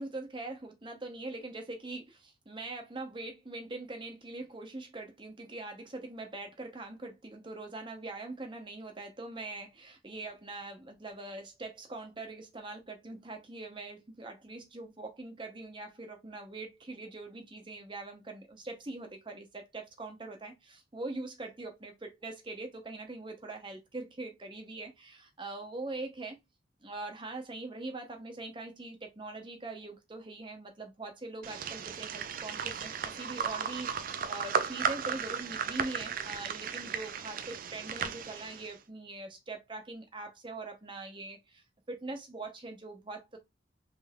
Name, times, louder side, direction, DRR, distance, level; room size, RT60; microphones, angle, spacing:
voice 1, 0.0-26.4 26.8-43.4, right 2 dB, 25° right, 0.8 m, -42 dB
sound 1, 31.4-38.7, right 6 dB, 45° right, 0.4 m, -35 dB
3.3 x 3.3 x 2.3 m
head